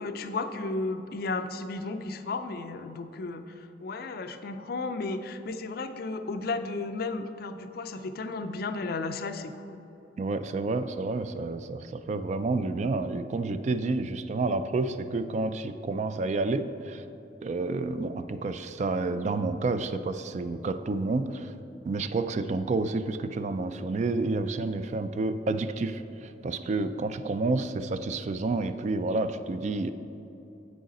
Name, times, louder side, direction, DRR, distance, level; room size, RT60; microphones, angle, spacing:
voice 1, 0.0-9.8, left 3 dB, 55° left, 8 dB, 0.4 m, -34 dB
voice 2, 10.2-17.0 17.4-21.5 21.9-29.9, right 3 dB, 40° right, 11 dB, 0.3 m, -29 dB
7.9 x 6.3 x 4.1 m, 2.9 s
head